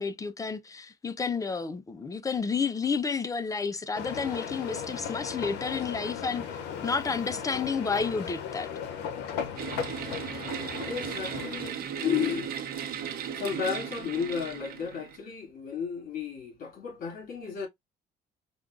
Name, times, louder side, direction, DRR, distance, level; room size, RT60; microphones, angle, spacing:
voice 1, 0.0-6.4 6.8-8.7, left 5 dB, 20° left, 0.4 m, -31 dB
sound 1, 3.9-11.7, left 7 dB, 85° left, 0.6 m, -36 dB
sound 2, 9.6-15.2, right 8 dB, 65° right, 0.8 m, -36 dB
voice 2, 10.9-12.6 13.3-17.7, left 7 dB, 55° left, 1.9 m, -33 dB
4.9 x 2.3 x 2.4 m
cardioid pair, 110°, 17 cm